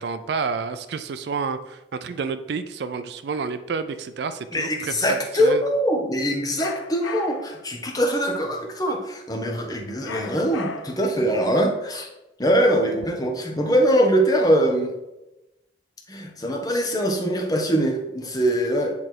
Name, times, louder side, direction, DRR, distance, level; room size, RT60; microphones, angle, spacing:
voice 1, 0.0-5.6, right 5 dB, 60° right, 11 dB, 0.4 m, -30 dB
voice 2, 4.5-12.1 12.4-14.9 16.1-18.9, equal, 20° left, 0 dB, 0.9 m, -22 dB
sound 1, 6.6-7.6 10.0-11.1, left 5 dB, 90° left, 0.5 m, -36 dB
8.2 x 3.2 x 4.4 m, 0.96 s
head